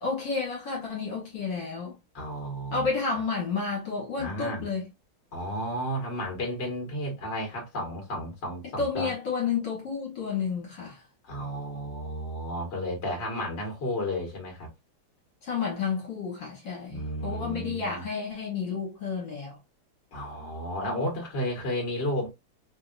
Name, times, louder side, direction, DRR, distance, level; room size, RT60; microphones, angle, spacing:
voice 1, 0.0-2.0 2.7-4.8 8.8-11.0 15.4-19.6, left 5 dB, 65° left, 1.8 m, -31 dB
voice 2, 2.1-2.9 4.2-4.6 5.3-9.1 11.2-14.7 16.9-18.0 20.1-22.3, equal, 35° left, 1.6 m, -32 dB
3.6 x 2.6 x 2.5 m
omnidirectional pair, 2.3 m